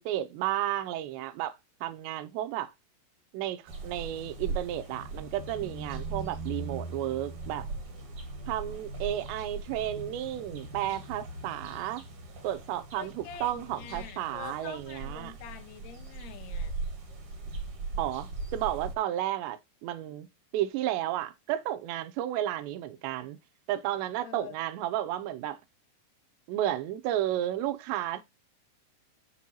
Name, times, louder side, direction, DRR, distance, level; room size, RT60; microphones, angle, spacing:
voice 1, 0.0-1.6 1.8-2.7 3.3-7.7 8.5-12.0 12.4-15.3 18.0-20.3 20.5-23.4 23.7-25.6 26.5-28.2, right 13 dB, 90° right, 3.0 m, -32 dB
sound 1, 3.7-19.0, right 3 dB, 45° right, 2.0 m, -39 dB
voice 2, 12.9-16.8 24.2-24.6, left 10 dB, 85° left, 1.6 m, -45 dB
6.7 x 6.2 x 2.8 m
omnidirectional pair, 4.9 m